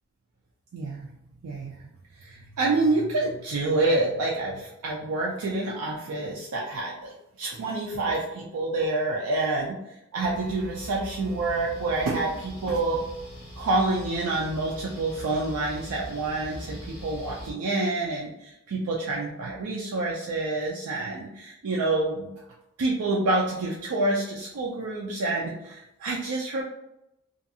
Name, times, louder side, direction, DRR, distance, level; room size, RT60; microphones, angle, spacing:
voice 1, 0.7-1.1 1.4-1.8 2.2-13.1 13.6-22.3 22.8-26.6, right 2 dB, 90° right, -3 dB, 0.4 m, -28 dB
sound 1, 10.2-17.5, equal, 10° right, 0.6 m, -42 dB
2.5 x 2.3 x 2.7 m, 0.85 s
head